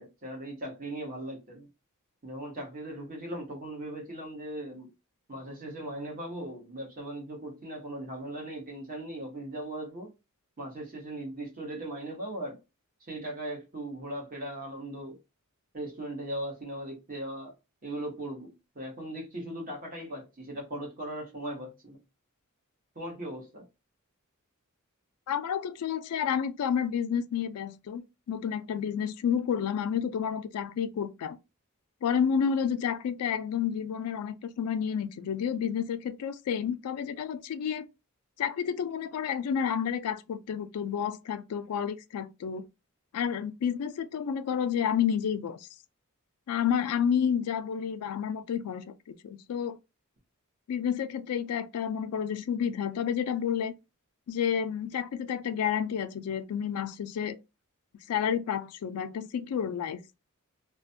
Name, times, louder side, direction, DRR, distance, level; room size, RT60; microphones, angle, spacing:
voice 1, 0.0-1.7 2.2-4.9 5.3-10.1 10.6-12.6 13.0-15.2 15.7-17.5 17.8-22.0 22.9-23.6, right 1 dB, 40° right, 1.0 m, -38 dB
voice 2, 25.3-31.4 32.0-37.9 38.4-42.7 43.1-45.7 46.5-48.8 49.2-49.8 50.7-53.7 54.3-57.4 58.1-60.0, left 8 dB, 90° left, 0.3 m, -30 dB
2.3 x 2.2 x 2.6 m
head